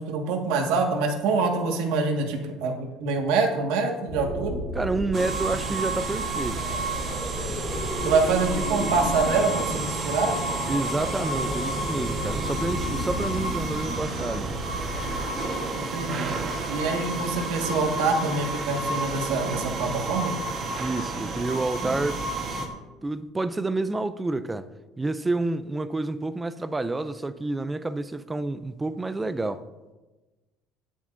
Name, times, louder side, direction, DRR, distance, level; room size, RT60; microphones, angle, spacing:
voice 1, 0.0-4.6 8.0-10.4 15.7-16.3 16.7-20.3, right 4 dB, 80° right, 1.6 m, -25 dB
sound 1, 4.1-15.2, equal, 10° left, 1.8 m, -33 dB
voice 2, 4.7-6.6 10.7-14.6 20.8-22.2 22.5-22.6 23.0-24.7 25.0-29.6, right 2 dB, 10° right, 0.3 m, -29 dB
sound 2, 5.1-22.7, right 2 dB, 30° right, 1.1 m, -31 dB
20.5 x 7.2 x 2.6 m
cardioid pair, 180°, 0 cm